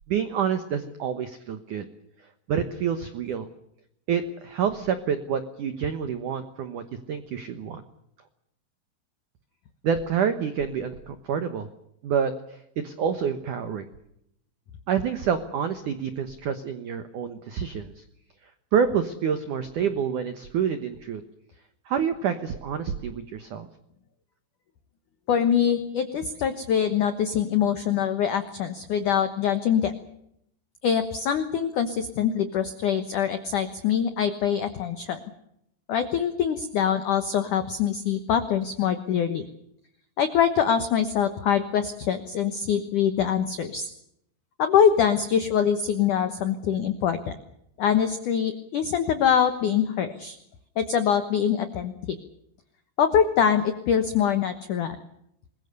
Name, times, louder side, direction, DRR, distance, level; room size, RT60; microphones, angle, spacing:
voice 1, 0.1-1.9 2.5-3.5 4.1-7.8 9.8-11.7 12.0-13.8 14.9-18.0 18.4-21.2 21.9-23.7, right 7 dB, 80° right, 9 dB, 1.7 m, -28 dB
voice 2, 25.3-29.9 30.8-35.2 35.9-39.5 40.2-43.9 44.6-47.4 47.8-50.4 50.8-52.2 53.0-55.0, left 8 dB, 90° left, 9 dB, 1.7 m, -24 dB
26.0 x 21.5 x 6.8 m, 0.76 s
omnidirectional pair, 5.7 m